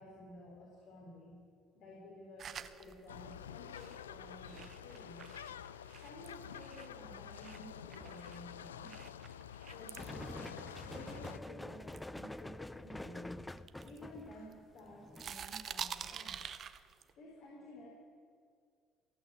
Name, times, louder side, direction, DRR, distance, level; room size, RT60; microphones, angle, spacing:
voice 1, 0.0-2.4 2.8-5.3 6.0-9.0 9.7-13.4 13.8-16.4 17.2-17.9, left 1 dB, 60° left, -3 dB, 3.9 m, -53 dB
sound 1, 2.4-7.0 7.4-11.5 11.9-13.1 13.6-14.8 15.1-17.1, right 7 dB, 50° right, 0.8 m, -48 dB
sound 2, 3.1-11.4, left 9 dB, 90° left, 0.4 m, -49 dB
sound 3, 10.0-15.4, left 1 dB, 10° left, 0.6 m, -47 dB
16.0 x 8.9 x 8.4 m, 2.2 s
hypercardioid pair, 55°, 0 cm